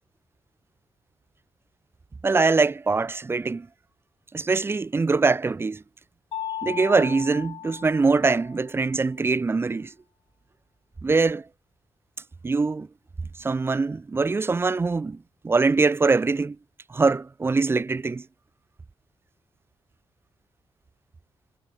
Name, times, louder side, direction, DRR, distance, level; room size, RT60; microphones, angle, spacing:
voice 1, 2.2-3.7 4.3-5.8 6.6-9.9 11.0-11.4 12.4-12.9 13.4-15.2 15.4-16.6 16.9-18.2, right 4 dB, 25° right, 0.7 m, -23 dB
Mallet percussion, 6.3-8.8, left 10 dB, 85° left, 1.4 m, -36 dB
cardioid pair, 120°, 10 cm